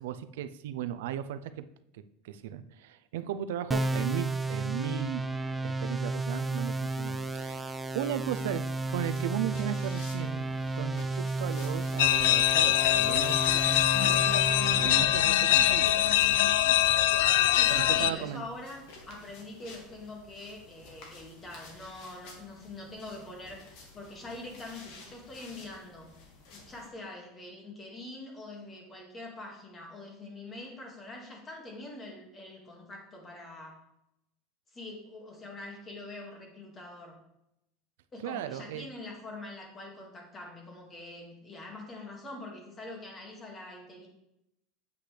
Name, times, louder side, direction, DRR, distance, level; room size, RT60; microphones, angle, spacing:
voice 1, 0.0-1.6 1.9-5.2 5.6-8.6 8.9-10.5 10.7-13.9 14.3-16.0 17.2-18.4 38.2-38.9, right 11 dB, 85° right, 11 dB, 0.5 m, -36 dB
sound 1, 3.7-15.0, right 2 dB, 10° right, 0.4 m, -32 dB
sound 2, 9.0-26.9, left 3 dB, 60° left, 1.9 m, -52 dB
sound 3, 12.0-18.1, left 13 dB, 80° left, 0.4 m, -23 dB
voice 2, 17.6-26.1 26.5-33.8 34.7-37.2 38.1-44.1, left 2 dB, 20° left, 1 dB, 2.0 m, -44 dB
8.2 x 8.2 x 3.3 m, 0.83 s
supercardioid pair, 145°, 0 cm